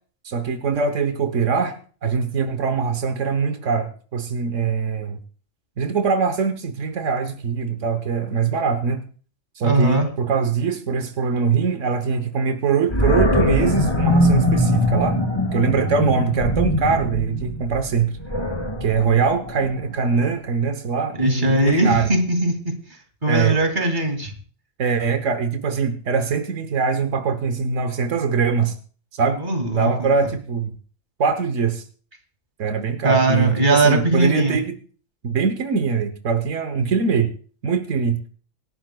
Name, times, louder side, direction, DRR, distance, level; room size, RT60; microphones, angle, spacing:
voice 1, 0.2-1.8 2.0-5.2 5.8-9.0 9.6-15.2 15.5-18.2 18.8-22.1 23.3-23.6 24.8-28.7 29.1-29.4 29.7-30.7 31.2-31.8 32.6-34.7 35.2-37.3 37.6-38.2, right 5 dB, 90° right, 8 dB, 1.3 m, -22 dB
voice 2, 9.6-10.1 21.2-22.7 23.2-24.3 29.4-30.1 33.0-34.6, right 2 dB, 40° right, 5 dB, 2.5 m, -20 dB
Animal, 12.9-20.0, left 1 dB, 20° left, 3.0 m, -22 dB
26.0 x 11.0 x 2.2 m, 0.41 s
omnidirectional pair, 1.3 m